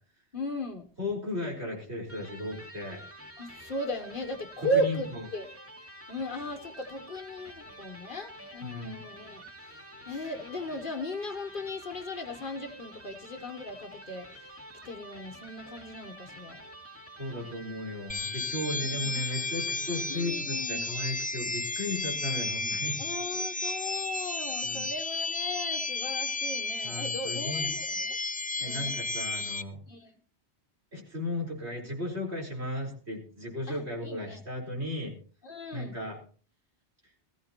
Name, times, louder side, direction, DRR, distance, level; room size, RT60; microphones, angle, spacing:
voice 1, 0.3-0.9 3.4-5.5 6.1-14.5 14.8-16.6 18.7-19.2 20.1-20.9 23.0-28.2 28.6-29.0 29.9-30.1 33.7-34.4 35.4-36.0, equal, 50° left, 1.2 m, -36 dB
voice 2, 1.0-3.0 4.7-5.0 8.6-9.0 17.2-23.0 24.6-24.8 26.8-27.7 28.6-29.8 30.9-35.1 35.7-36.2, left 1 dB, 75° right, 4.7 m, -35 dB
Electric guitar, 2.0-20.4, equal, 10° right, 2.5 m, -49 dB
sound 1, 18.1-29.6, left 3 dB, 10° left, 0.5 m, -33 dB
20.0 x 14.5 x 2.9 m
omnidirectional pair, 1.1 m